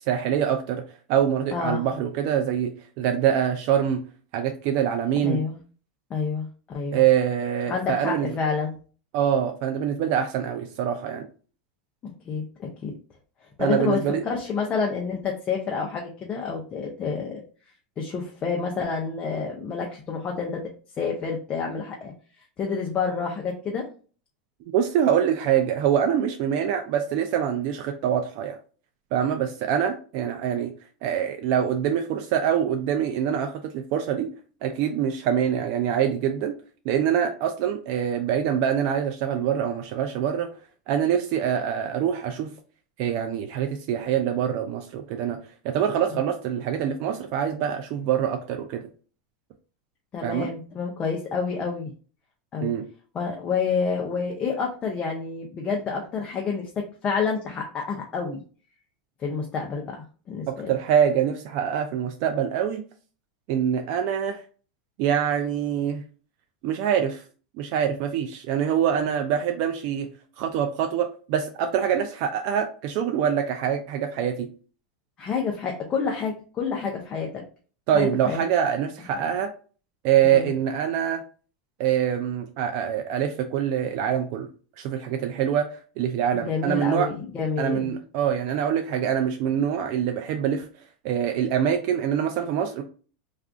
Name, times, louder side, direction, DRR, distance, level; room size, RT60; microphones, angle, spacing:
voice 1, 0.1-0.8 1.1-2.7 3.0-4.0 4.3-5.4 6.9-8.3 9.1-11.3 13.6-14.2 24.7-28.6 29.1-30.7 31.0-34.3 34.6-36.5 36.9-40.5 40.9-42.5 43.0-45.4 45.6-48.8 50.2-50.5 52.6-52.8 60.5-62.8 63.5-64.4 65.0-66.0 66.6-67.2 67.6-70.1 70.4-74.5 77.9-79.5 80.0-81.2 81.8-84.5 84.8-87.1 87.6-90.7 91.0-92.8, right 9 dB, 50° right, 5 dB, 0.3 m, -24 dB
voice 2, 1.5-1.9 5.2-5.6 6.1-7.1 7.7-8.8 12.0-12.9 13.6-17.4 18.0-20.7 21.0-22.1 22.6-23.9 46.1-46.2 50.1-51.9 52.5-52.7 53.1-58.4 59.2-60.0 60.3-60.7 75.2-77.4 77.9-78.4 80.2-80.5 86.3-87.9, left 5 dB, 25° left, 0 dB, 0.5 m, -28 dB
2.4 x 2.3 x 3.5 m, 0.39 s
supercardioid pair, 135°, 4 cm